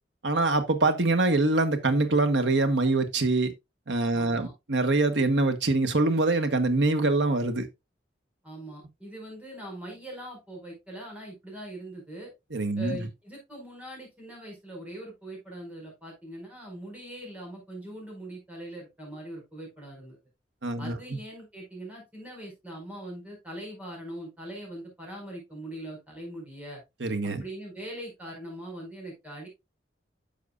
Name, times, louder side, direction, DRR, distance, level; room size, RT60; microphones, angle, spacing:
voice 1, 0.2-3.5 3.9-7.7 12.5-13.0 20.6-21.2 27.0-27.4, right 2 dB, 90° right, 1.3 m, -24 dB
voice 2, 4.1-4.5 8.4-12.3 12.8-20.2 20.8-26.8 27.4-29.5, right 1 dB, 10° right, 4.9 m, -41 dB
10.5 x 6.7 x 2.4 m
head